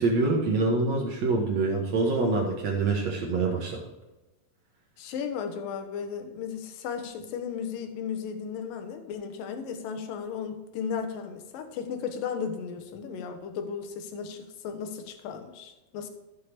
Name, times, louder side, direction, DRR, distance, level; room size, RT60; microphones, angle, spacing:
voice 1, 0.0-3.8, right 3 dB, 60° right, -1 dB, 1.9 m, -25 dB
voice 2, 5.0-16.1, left 6 dB, 70° left, 6 dB, 2.5 m, -35 dB
14.0 x 6.6 x 3.5 m, 1.1 s
omnidirectional pair, 4.6 m